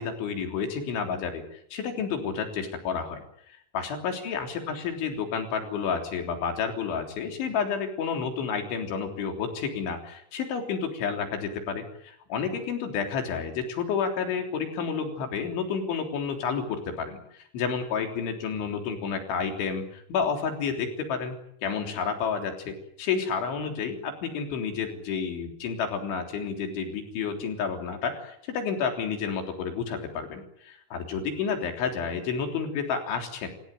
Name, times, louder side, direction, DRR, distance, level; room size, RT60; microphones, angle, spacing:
voice 1, 0.0-1.4 1.7-3.2 3.7-21.4 21.6-33.5, left 6 dB, 85° left, 4 dB, 5.9 m, -30 dB
29.0 x 16.5 x 9.2 m, 0.69 s
omnidirectional pair, 5.2 m